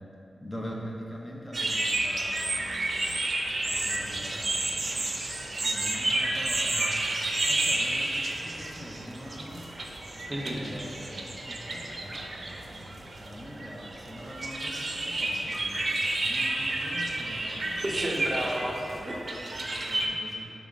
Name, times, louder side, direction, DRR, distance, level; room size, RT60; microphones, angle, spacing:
voice 1, 0.4-3.2 3.6-9.8 10.4-17.8 18.3-18.4 18.9-19.0 19.3-20.5, equal, 20° left, -2 dB, 0.8 m, -43 dB
sound 1, 1.5-20.1, right 2 dB, 50° right, 0.6 m, -31 dB
voice 2, 10.3-10.7 17.8-19.6 19.9-20.1, equal, 20° right, -2 dB, 0.8 m, -33 dB
5.5 x 3.6 x 5.2 m, 2.6 s
cardioid pair, 60°, 0 cm